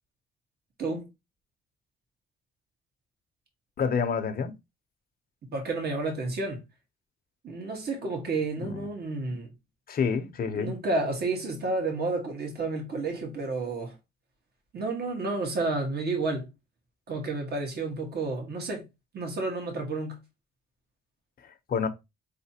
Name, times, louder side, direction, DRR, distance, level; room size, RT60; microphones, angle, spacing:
voice 1, 3.8-4.5 8.6-8.9 9.9-10.7 21.7-21.9, left 6 dB, 50° left, 0.8 m, -28 dB
voice 2, 5.5-6.6 7.4-9.5 10.5-13.9 14.7-16.5 17.1-18.8 19.1-20.2, right 3 dB, 55° right, 1.6 m, -31 dB
4.4 x 3.3 x 2.9 m
cardioid pair, 90°, 20 cm